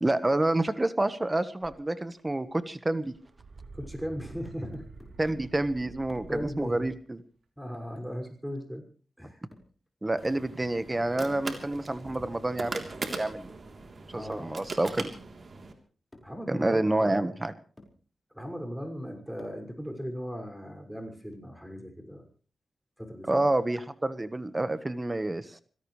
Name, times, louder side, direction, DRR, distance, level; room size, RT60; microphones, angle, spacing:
voice 1, 0.0-3.1 5.2-7.2 10.0-13.5 14.1-15.1 16.5-17.5 23.3-25.6, right 2 dB, 25° right, 12 dB, 1.4 m, -28 dB
sound 1, 1.6-1.7 2.1-2.7 3.0-6.9, right 3 dB, 70° right, 3.4 m, -48 dB
voice 2, 3.7-4.9 6.3-6.9 7.6-8.8 9.2-9.4 11.2-11.6 14.1-14.5 16.2-17.2 18.3-22.2 23.0-23.4, equal, 5° right, 3 dB, 6.2 m, -38 dB
sound 2, 3.9-6.5 8.0-8.3 9.5-9.8 11.1-11.4 12.7-13.0 14.3-14.6 15.6-15.7 16.1-16.4 17.3-17.4 17.8-18.0 19.4-19.7, left 1 dB, 25° left, 5.3 m, -55 dB
sound 3, 10.2-15.7, right 3 dB, 55° right, 3.5 m, -40 dB
25.0 x 17.0 x 3.3 m, 0.41 s
cardioid pair, 60°, 0 cm